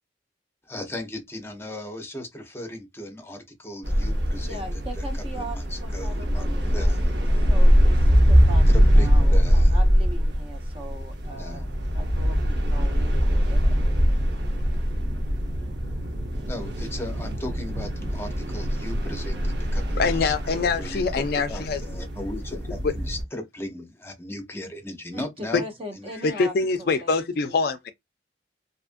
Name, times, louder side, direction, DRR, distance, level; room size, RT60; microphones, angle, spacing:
voice 1, 0.6-7.0 8.7-9.8 11.4-11.6 16.4-25.6 26.0-26.1, left 1 dB, 15° left, 0.6 m, -37 dB
sound 1, 3.8-23.2, equal, 65° right, 0.8 m, -22 dB
voice 2, 4.4-6.5 6.7-8.6 8.9-13.2 13.5-13.8 25.1-27.7, equal, 30° right, 0.6 m, -40 dB
voice 3, 19.9-21.8 26.2-27.9, left 4 dB, 55° left, 0.3 m, -24 dB
2.7 x 2.4 x 2.5 m
head